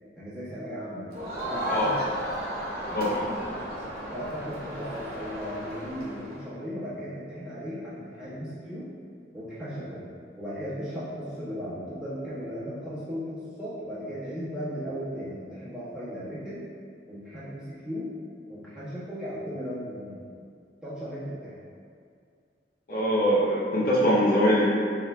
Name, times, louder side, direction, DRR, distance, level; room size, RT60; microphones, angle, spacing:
voice 1, 0.2-1.1 1.4-2.2 2.9-3.6 4.1-8.9 9.3-10.1 10.4-16.6 17.1-18.1 18.5-20.2 20.8-21.5, equal, 5° right, -13 dB, 1.3 m, -36 dB
Crowd, 1.1-6.4, equal, 60° right, 0.9 m, -34 dB
voice 2, 22.9-24.7, equal, 55° left, -7 dB, 0.7 m, -23 dB
4.9 x 3.6 x 2.2 m, 2.3 s
head